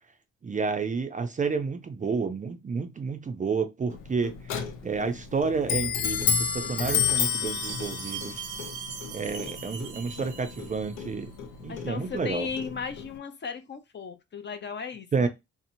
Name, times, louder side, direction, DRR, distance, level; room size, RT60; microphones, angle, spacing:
voice 1, 0.4-4.3 4.8-6.3 6.5-8.4 9.1-11.3 11.6-12.5 15.1-15.3, right 5 dB, 25° right, 0.4 m, -30 dB
Clock, 3.9-13.2, left 7 dB, 85° left, 0.7 m, -31 dB
Chime, 7.1-11.2, right 8 dB, 65° right, 0.6 m, -40 dB
voice 2, 11.7-15.3, left 6 dB, 35° left, 0.5 m, -36 dB
2.8 x 2.0 x 2.6 m
cardioid pair, 90°, 30 cm